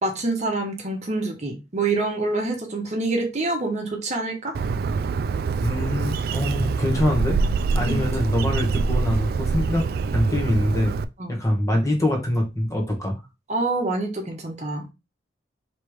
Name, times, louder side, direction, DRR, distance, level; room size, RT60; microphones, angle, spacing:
voice 1, 0.0-4.6 7.9-8.1 11.2-11.4 13.5-14.8, right 2 dB, 40° right, 1.0 m, -26 dB
Bird, 4.5-11.0, right 4 dB, 60° right, 0.3 m, -25 dB
voice 2, 5.6-7.4 7.7-9.8 10.1-11.0 11.3-13.2, left 1 dB, 20° left, 1.2 m, -24 dB
3.2 x 3.0 x 4.7 m
head